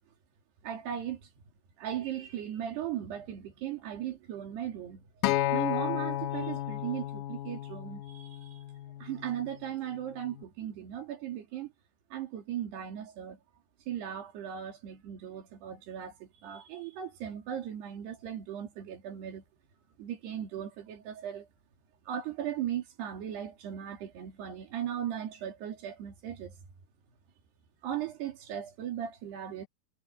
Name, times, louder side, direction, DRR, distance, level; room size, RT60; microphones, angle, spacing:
voice 1, 0.6-1.3 1.8-5.1 5.5-8.6 9.0-11.7 12.1-13.4 13.9-19.4 20.0-21.5 22.1-26.6 27.8-29.7, right 10 dB, 75° right, 5.0 m, -37 dB
Acoustic guitar, 5.2-9.5 10.3-10.4, left 13 dB, 75° left, 2.0 m, -33 dB
omnidirectional pair, 4.8 m